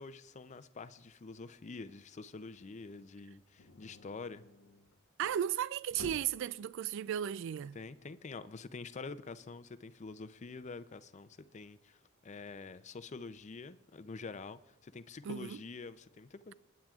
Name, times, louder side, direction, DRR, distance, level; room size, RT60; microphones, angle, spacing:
voice 1, 0.0-4.5 7.7-16.5, left 4 dB, 35° left, 0.5 m, -47 dB
sound 1, 3.6-5.5 5.9-6.5, left 2 dB, 75° left, 0.7 m, -53 dB
voice 2, 5.2-7.8 15.2-15.6, right 10 dB, 65° right, 0.3 m, -35 dB
27.0 x 10.5 x 2.4 m
head